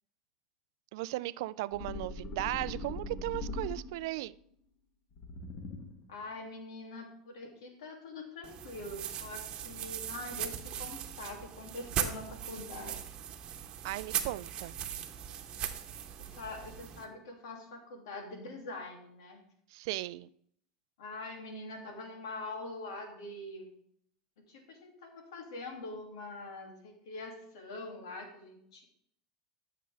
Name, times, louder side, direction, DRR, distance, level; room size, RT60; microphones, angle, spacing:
voice 1, 0.9-4.4 13.8-14.7 19.7-20.3, right 18 dB, 75° right, 18 dB, 0.3 m, -36 dB
sound 1, 1.7-4.2 5.1-6.1, left 2 dB, 45° left, 1.8 m, -41 dB
voice 2, 6.1-12.9 16.2-19.4 21.0-23.7 24.4-28.8, left 2 dB, 90° left, 3 dB, 2.4 m, -44 dB
sound 2, 8.4-17.0, right 9 dB, 40° right, 1.1 m, -39 dB
13.0 x 6.6 x 3.4 m, 0.67 s
supercardioid pair, 125°, 2 cm